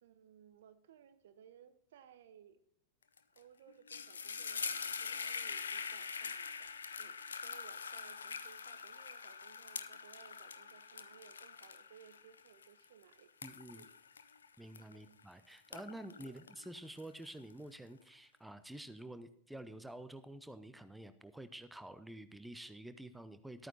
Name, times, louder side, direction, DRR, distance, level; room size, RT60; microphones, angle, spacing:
voice 1, 0.0-2.6 3.3-6.7 7.0-13.3 13.7-14.0 14.9-15.1 16.3-16.4, right 9 dB, 60° right, 12 dB, 0.8 m, -61 dB
sound 1, 3.2-3.4 3.7-15.2 15.6-17.5, left 6 dB, 70° left, 0.6 m, -44 dB
voice 2, 13.4-13.9 14.6-23.7, right 1 dB, 5° right, 12 dB, 0.7 m, -49 dB
13.5 x 9.1 x 4.1 m, 0.67 s
figure-of-eight pair, 90°, 0 cm